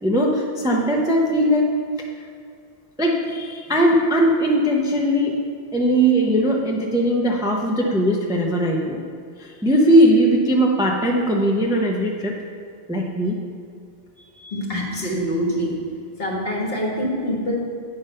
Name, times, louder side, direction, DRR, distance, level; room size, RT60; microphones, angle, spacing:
voice 1, 0.0-1.7 3.0-5.3 5.7-9.0 9.4-12.3 12.9-13.3, right 1 dB, 5° right, 0 dB, 0.6 m, -19 dB
voice 2, 14.2-15.7 16.2-17.6, equal, 60° left, -2 dB, 1.8 m, -25 dB
9.0 x 5.1 x 5.6 m, 2.2 s
omnidirectional pair, 1.1 m